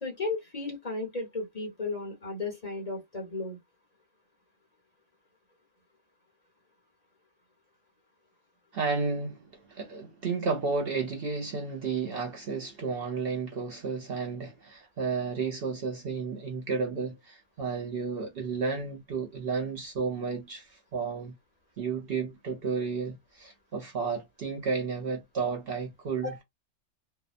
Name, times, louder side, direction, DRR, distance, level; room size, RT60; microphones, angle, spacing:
voice 1, 0.0-3.6 26.2-26.4, left 3 dB, 35° left, 1.0 m, -34 dB
voice 2, 8.7-9.4 9.7-21.3 21.8-26.3, right 4 dB, 60° right, 0.7 m, -32 dB
2.7 x 2.0 x 2.4 m
omnidirectional pair, 1.3 m